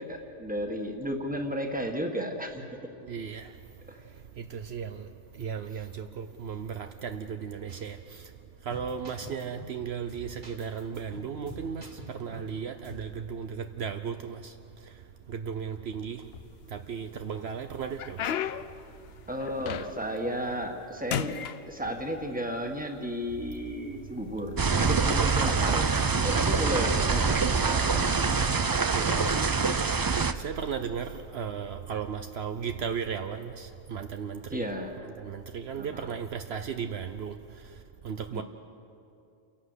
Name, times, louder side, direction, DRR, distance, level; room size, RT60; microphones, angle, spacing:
voice 1, 0.0-2.6 3.9-4.0 19.3-25.9 26.1-28.1 28.5-29.3 34.5-35.0 35.8-36.1 38.3-38.4, equal, 5° right, 3 dB, 1.7 m, -34 dB
voice 2, 3.1-3.5 4.5-5.0 5.4-8.0 8.7-11.9 12.2-14.4 15.3-16.2 16.7-18.2 28.9-29.5 30.4-34.7 35.0-37.3 38.0-38.4, right 7 dB, 65° right, 7 dB, 1.0 m, -35 dB
sound 1, 7.7-7.9 8.2-8.3 8.7-9.8 10.1-12.5 12.8-13.1, right 1 dB, 85° right, 3.3 m, -45 dB
sound 2, 16.2-17.0 17.5-20.2 20.6-20.8 21.1-22.3 23.1-23.2 23.9-24.2 25.3-25.5, left 9 dB, 65° left, 0.8 m, -35 dB
sound 3, 24.6-30.3, right 4 dB, 35° right, 0.3 m, -25 dB
29.0 x 11.5 x 8.2 m, 2.7 s
omnidirectional pair, 1.2 m